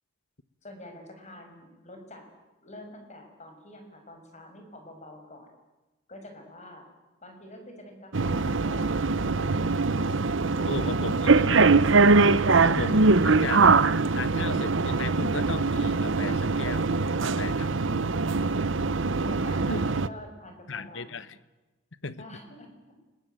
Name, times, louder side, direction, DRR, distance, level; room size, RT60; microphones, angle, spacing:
voice 1, 0.6-2.3 2.6-5.5 6.1-6.9 7.2-9.8 10.3-11.8 18.5-18.7 19.2-21.2 22.2-22.7, left 1 dB, 35° left, 5 dB, 6.1 m, -47 dB
sound 1, 8.1-20.1, right 3 dB, 65° right, 0.8 m, -22 dB
voice 2, 10.7-11.9 12.6-13.7 14.1-17.8 19.7-19.9 20.7-21.3 22.0-22.2, left 3 dB, 60° left, 15 dB, 1.2 m, -36 dB
29.0 x 21.0 x 9.3 m, 1.1 s
head